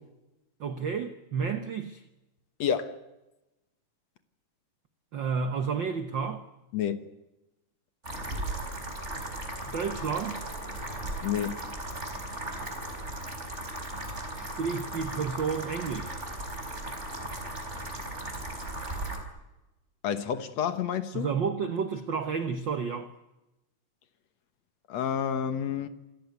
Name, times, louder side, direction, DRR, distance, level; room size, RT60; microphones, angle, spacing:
voice 1, 0.6-2.0 5.1-6.5 9.7-10.4 14.4-16.2 21.1-23.1, right 5 dB, 80° right, 1.0 m, -31 dB
voice 2, 2.6-3.0 6.7-7.1 11.2-11.6 20.0-21.3 24.9-25.9, left 8 dB, 60° left, 2.1 m, -29 dB
sound 1, 8.0-19.2, right 1 dB, 20° right, 4.2 m, -37 dB
28.0 x 15.0 x 9.5 m
omnidirectional pair, 3.9 m